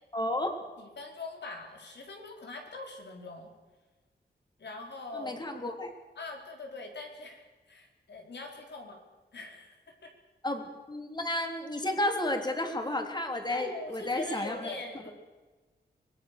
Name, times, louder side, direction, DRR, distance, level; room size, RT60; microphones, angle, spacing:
voice 1, 0.1-0.6 5.1-5.9 10.4-14.7, left 1 dB, 25° left, 4 dB, 3.4 m, -32 dB
voice 2, 0.8-3.5 4.6-5.4 6.2-9.0 9.3-10.1 13.5-15.1, left 3 dB, 75° left, 2 dB, 4.6 m, -42 dB
24.5 x 20.5 x 6.8 m, 1.3 s
wide cardioid pair, 115°, 18 cm